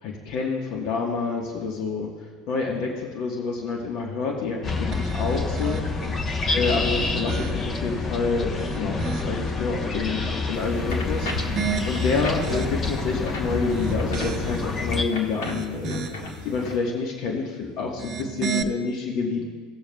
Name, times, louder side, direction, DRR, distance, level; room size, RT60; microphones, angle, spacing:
voice 1, 0.0-2.1 2.5-5.8 6.1-16.1 16.4-19.4, left 4 dB, 55° left, -1 dB, 1.4 m, -28 dB
sound 1, 4.6-15.0, left 3 dB, 30° left, 1.1 m, -28 dB
sound 2, 4.9-6.2 6.8-7.9 8.4-9.5 11.0-13.1 13.6-14.8 15.2-16.4 17.8-18.6, right 6 dB, 40° right, 0.7 m, -33 dB
sound 3, 10.5-16.8, left 3 dB, 75° left, 1.5 m, -36 dB
18.0 x 7.0 x 2.4 m, 1.5 s
hypercardioid pair, 80°, 0 cm